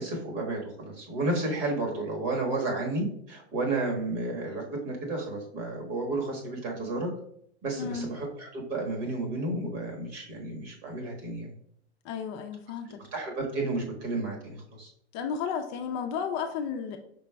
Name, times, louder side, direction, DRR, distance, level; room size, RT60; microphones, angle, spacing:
voice 1, 0.0-7.1 7.6-11.5 13.1-14.9, right 2 dB, 45° right, 0 dB, 1.5 m, -32 dB
voice 2, 7.8-8.1 12.0-13.0 15.1-17.0, left 6 dB, 40° left, 5 dB, 0.5 m, -33 dB
5.3 x 3.8 x 2.2 m, 0.67 s
hypercardioid pair, 115°, 35 cm